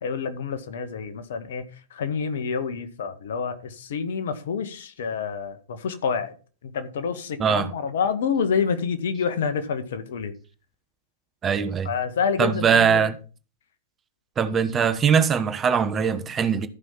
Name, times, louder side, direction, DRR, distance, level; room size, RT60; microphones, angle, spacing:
voice 1, 0.0-6.3 6.6-10.3 11.8-13.1, left 6 dB, 60° left, 1.7 m, -28 dB
voice 2, 11.4-11.9 12.4-13.2 14.4-16.7, right 7 dB, 20° right, 1.1 m, -21 dB
14.0 x 5.6 x 5.7 m
figure-of-eight pair, 105°, 0 cm